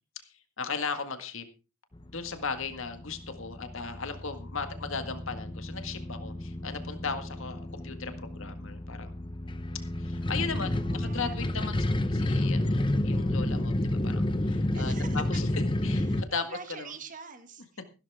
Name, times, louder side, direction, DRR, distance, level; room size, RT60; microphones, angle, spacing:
voice 1, 0.3-1.5 2.1-9.1 10.0-11.8 12.1-15.5 15.8-16.4 16.7-16.9, left 5 dB, 60° left, 8 dB, 1.8 m, -37 dB
sound 1, 1.9-16.2, left 1 dB, 20° left, 0.7 m, -30 dB
voice 2, 10.5-12.0 14.7-15.2 15.9-17.8, right 5 dB, 35° right, 7 dB, 1.9 m, -46 dB
15.0 x 12.5 x 3.6 m, 0.32 s
head